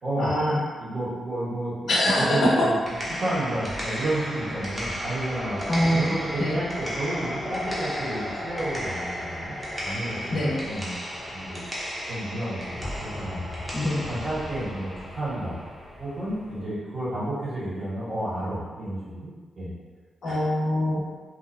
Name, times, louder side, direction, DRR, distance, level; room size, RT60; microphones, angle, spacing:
voice 1, 0.2-0.6 1.9-2.7 5.7-6.6 10.3-10.6 13.7-14.0 20.2-21.0, left 1 dB, 75° left, -6 dB, 0.7 m, -23 dB
voice 2, 0.8-5.6 5.9-9.6 9.8-11.0 11.3-11.6 12.1-13.4 14.1-15.6 16.0-19.7 20.2-20.4, right 1 dB, 55° right, -10 dB, 1.5 m, -31 dB
sound 1, 2.6-16.6, equal, 20° right, 0.9 m, -34 dB
2.8 x 2.3 x 2.5 m, 1.5 s
cardioid pair, 55°, 0 cm